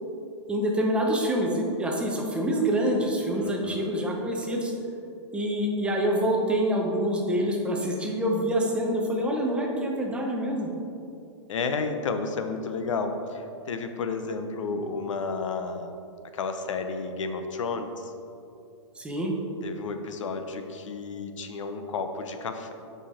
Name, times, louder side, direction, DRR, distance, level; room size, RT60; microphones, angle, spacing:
voice 1, 0.5-4.7 5.3-10.7 19.0-19.3, equal, 5° right, -1 dB, 0.7 m, -26 dB
voice 2, 3.3-4.0 11.5-15.9 16.3-18.1 19.6-22.7, left 4 dB, 85° left, 7 dB, 0.8 m, -32 dB
7.6 x 5.3 x 4.2 m, 2.6 s
hypercardioid pair, 155°, 16 cm